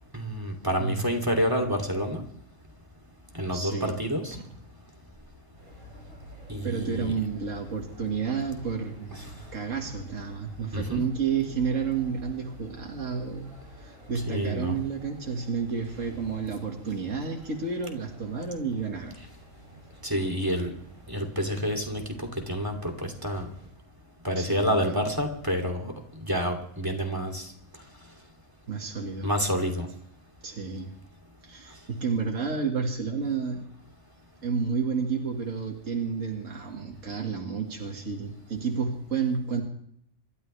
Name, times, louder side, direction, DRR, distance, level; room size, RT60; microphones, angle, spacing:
voice 1, 0.1-2.2 3.3-4.4 6.5-7.1 9.1-9.2 10.7-11.0 14.3-14.7 20.0-20.7 21.1-23.5 24.2-25.9 26.2-27.4 29.2-29.9, equal, 15° right, 3 dB, 2.8 m, -28 dB
voice 2, 3.5-3.9 4.3-4.5 6.6-13.5 13.8-19.2 24.4-24.9 28.7-29.3 30.4-30.9 31.4-33.7 34.4-39.6, right 5 dB, 65° right, 0 dB, 2.4 m, -31 dB
sound 1, 5.6-23.7, left 1 dB, 45° right, 8.2 m, -50 dB
28.0 x 12.5 x 3.4 m, 0.68 s
omnidirectional pair, 1.4 m